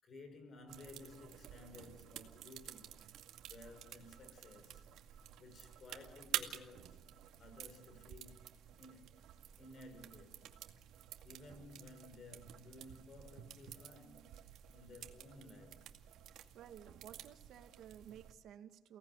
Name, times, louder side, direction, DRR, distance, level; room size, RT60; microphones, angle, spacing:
voice 1, 0.0-3.0 3.4-4.8 5.4-7.0 7.4-8.5 8.8-9.3 9.6-10.6 11.2-16.0, left 2 dB, 35° left, 6.0 m, -56 dB
sound 1, 0.7-18.3, right 11 dB, 85° right, 2.2 m, -50 dB
voice 2, 16.5-19.0, right 10 dB, 65° right, 1.9 m, -55 dB
29.5 x 18.5 x 9.9 m
cardioid pair, 175°, 0 cm